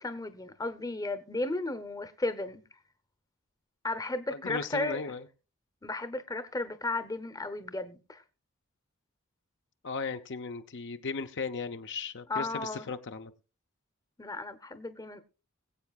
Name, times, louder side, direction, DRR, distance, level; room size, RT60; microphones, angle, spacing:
voice 1, 0.0-2.6 3.8-5.0 5.8-8.2 12.3-12.8 14.2-15.2, left 2 dB, 15° left, 0.8 m, -34 dB
voice 2, 4.3-5.3 9.8-13.3, left 4 dB, 55° left, 0.7 m, -36 dB
22.0 x 8.2 x 2.4 m
head